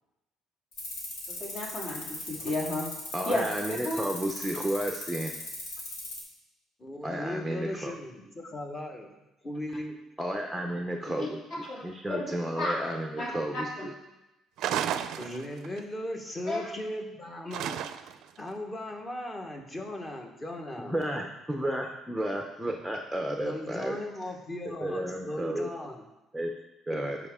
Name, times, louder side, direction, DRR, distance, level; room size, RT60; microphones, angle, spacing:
sound 1, 0.7-6.2, left 2 dB, 85° left, 2.7 m, -38 dB
voice 1, 1.4-2.9 3.3-4.0 11.2-11.3 11.7-11.8 12.1-12.7 13.2-13.3 13.5-13.9 16.5-16.7, left 2 dB, 45° left, -3 dB, 2.7 m, -32 dB
voice 2, 3.1-5.3 7.0-7.9 10.2-11.4 11.8-13.9 20.8-24.0 24.8-25.7 26.3-26.6 26.9-27.2, right 1 dB, 5° right, 2 dB, 0.6 m, -32 dB
voice 3, 6.8-9.1 9.4-10.0 15.2-17.8 18.4-20.9 23.4-26.0, left 1 dB, 20° left, 2 dB, 1.2 m, -37 dB
sound 2, 14.6-15.8 17.5-18.3, right 9 dB, 70° right, 0.4 m, -32 dB
12.5 x 4.9 x 3.6 m, 0.97 s
cardioid pair, 125°, 0 cm